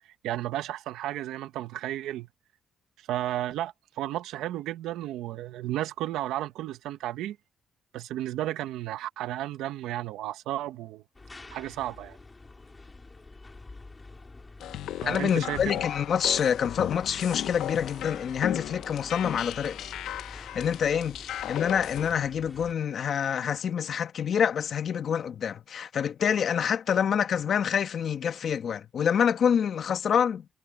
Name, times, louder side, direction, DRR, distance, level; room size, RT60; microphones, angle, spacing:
voice 1, 0.2-2.3 3.1-7.4 7.9-11.0 11.5-12.2 15.0-15.6, right 13 dB, 90° right, 1.5 m, -33 dB
sound 1, 11.1-22.7, left 3 dB, 20° left, 4.2 m, -47 dB
sound 2, 14.6-22.1, left 12 dB, 80° left, 1.0 m, -36 dB
voice 2, 15.0-19.8 20.3-30.5, left 8 dB, 60° left, 1.8 m, -27 dB
cardioid pair, 90°, 0 cm